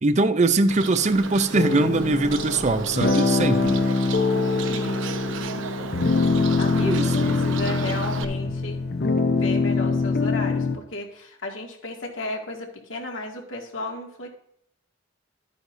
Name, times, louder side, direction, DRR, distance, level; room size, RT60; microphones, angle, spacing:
voice 1, 0.0-3.8 6.8-7.4, right 3 dB, 35° right, 0.6 m, -22 dB
Bird, 0.7-8.2, right 5 dB, 80° right, 0.8 m, -34 dB
sound 1, 1.5-10.8, left 4 dB, 50° left, 0.7 m, -23 dB
voice 2, 4.7-5.0 6.6-8.8 9.2-14.3, left 2 dB, 85° left, 2.2 m, -34 dB
12.0 x 9.2 x 2.7 m
head